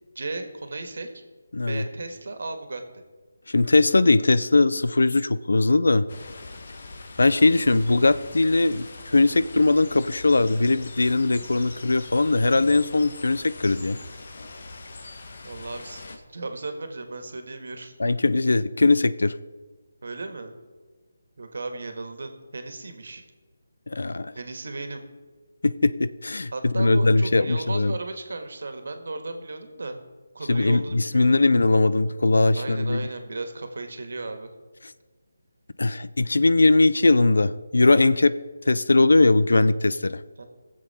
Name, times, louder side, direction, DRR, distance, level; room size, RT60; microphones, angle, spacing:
voice 1, 0.1-1.2 1.6-2.8 15.4-17.9 20.0-20.5 21.4-23.2 24.3-25.0 26.5-30.0 30.3-31.4 32.5-34.5 40.4-40.5, right 3 dB, 65° right, 7 dB, 1.7 m, -35 dB
voice 2, 1.5-1.8 3.5-6.1 7.2-8.9 9.1-14.0 18.0-19.4 23.9-24.3 25.6-27.9 30.5-33.1 35.8-38.4 38.7-40.2, left 2 dB, 85° left, 15 dB, 0.5 m, -20 dB
sound 1, 6.1-16.2, left 3 dB, 55° left, 1.3 m, -42 dB
18.5 x 7.6 x 4.3 m, 1.4 s
figure-of-eight pair, 165°, 0 cm